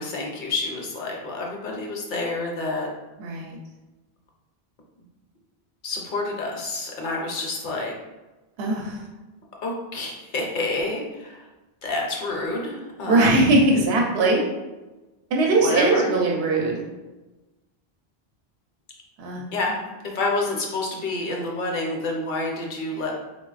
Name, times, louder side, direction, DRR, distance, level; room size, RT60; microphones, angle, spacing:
voice 1, 0.0-2.9 5.8-8.0 9.6-11.5 11.8-13.5 15.6-16.2 19.5-19.8 20.1-23.2, left 2 dB, 55° left, -1 dB, 0.7 m, -28 dB
voice 2, 3.2-3.6 8.6-9.0 13.0-14.4 15.3-16.8 19.2-19.4, right 2 dB, 80° right, -1 dB, 0.8 m, -20 dB
3.8 x 2.2 x 2.3 m, 1.1 s
omnidirectional pair, 1.1 m